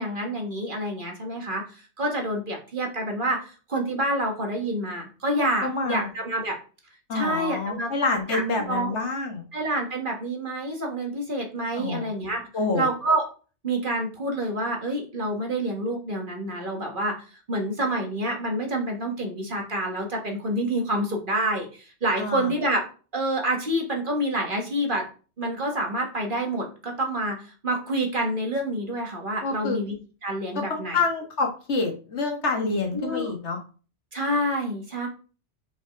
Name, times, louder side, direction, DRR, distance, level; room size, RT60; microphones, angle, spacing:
voice 1, 0.0-6.6 7.1-7.9 8.3-8.9 9.5-12.4 12.7-13.3 13.6-17.2 17.5-22.8 23.1-25.1 25.4-29.9 30.2-31.0 32.9-33.3 34.1-35.1, right 1 dB, 45° right, 2 dB, 1.7 m, -28 dB
voice 2, 5.6-6.1 7.1-9.5 11.8-12.1 12.5-12.9 22.1-22.5 29.4-29.8 30.7-33.6, left 3 dB, 70° left, 2 dB, 1.8 m, -27 dB
5.2 x 4.9 x 5.1 m, 0.37 s
omnidirectional pair, 1.2 m